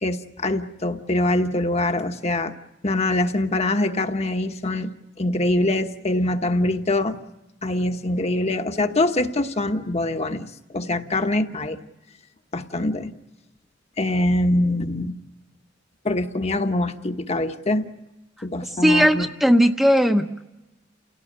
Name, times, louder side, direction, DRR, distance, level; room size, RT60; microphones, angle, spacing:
voice 1, 0.0-2.5 2.8-4.9 5.2-7.2 7.6-10.5 10.7-11.8 12.5-13.1 14.0-15.2 16.0-17.9 18.4-19.3, left 2 dB, 35° left, 6 dB, 1.2 m, -23 dB
voice 2, 18.8-20.4, equal, ahead, 4 dB, 0.9 m, -18 dB
29.5 x 17.5 x 8.7 m, 1.0 s
head